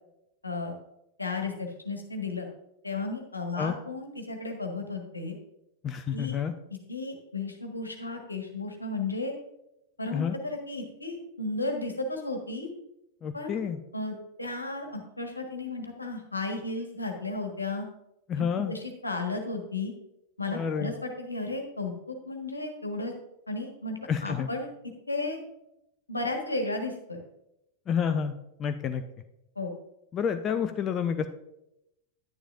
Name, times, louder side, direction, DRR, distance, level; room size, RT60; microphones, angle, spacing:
voice 1, 0.4-0.8 1.2-2.5 2.8-5.3 6.1-6.4 6.9-9.3 10.0-12.7 13.3-13.6 13.9-17.9 18.4-19.9 20.4-23.1 23.5-24.7 25.1-25.4 26.1-27.2 29.5-29.7, left 3 dB, 80° left, 3 dB, 1.4 m, -34 dB
voice 2, 5.8-6.5 10.1-10.4 13.2-13.8 18.3-18.7 20.5-20.9 24.1-24.5 27.9-28.3 28.6-29.0 30.1-31.3, left 7 dB, 25° left, 8 dB, 0.5 m, -29 dB
10.5 x 10.0 x 2.5 m, 0.86 s
figure-of-eight pair, 90°, 0 cm